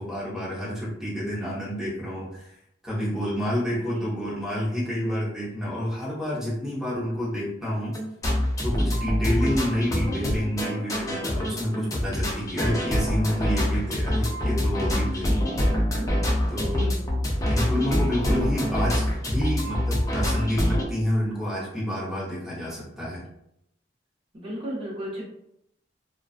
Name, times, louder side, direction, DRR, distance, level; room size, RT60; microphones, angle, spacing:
voice 1, 0.0-2.5 2.8-8.0 8.6-15.3 16.5-16.9 17.5-23.2, equal, ahead, -8 dB, 0.9 m, -29 dB
voice 2, 3.7-4.1 15.3-16.1 16.6-17.0 24.3-25.3, equal, 30° right, -6 dB, 0.7 m, -36 dB
sound 1, 7.9-20.8, equal, 20° left, 0.4 m, -25 dB
2.4 x 2.2 x 2.4 m, 0.77 s
head